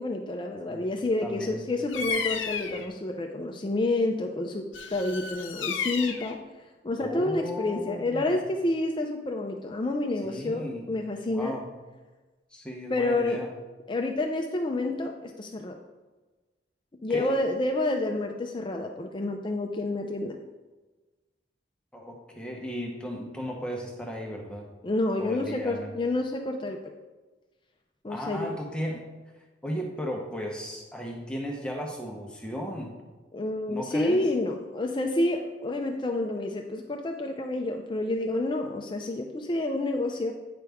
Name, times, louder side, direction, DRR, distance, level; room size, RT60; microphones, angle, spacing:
voice 1, 0.0-4.7 4.9-6.4 6.8-11.6 12.9-13.4 13.9-15.8 17.0-20.4 24.8-26.9 28.0-28.5 33.3-40.3, left 2 dB, 25° left, 3 dB, 0.4 m, -29 dB
voice 2, 1.2-1.6 7.0-8.4 10.2-10.8 11.3-11.7 12.5-13.5 17.1-17.4 21.9-24.7 25.2-26.0 28.1-29.0 29.6-32.9 33.7-34.3, equal, 5° left, -1 dB, 0.9 m, -35 dB
Bird vocalization bird call bird song, 1.9-2.9 4.7-6.3, left 6 dB, 80° left, 0.7 m, -32 dB
9.3 x 4.9 x 3.5 m, 1.2 s
head